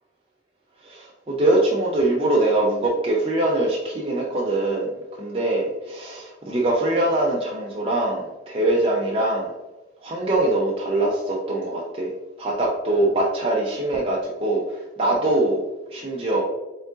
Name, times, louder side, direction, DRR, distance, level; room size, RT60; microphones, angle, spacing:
voice 1, 0.8-4.9 5.2-9.5 10.0-12.1 12.4-15.6 15.9-16.4, right 2 dB, 30° right, -3 dB, 0.5 m, -23 dB
4.8 x 3.8 x 2.4 m, 1.1 s
head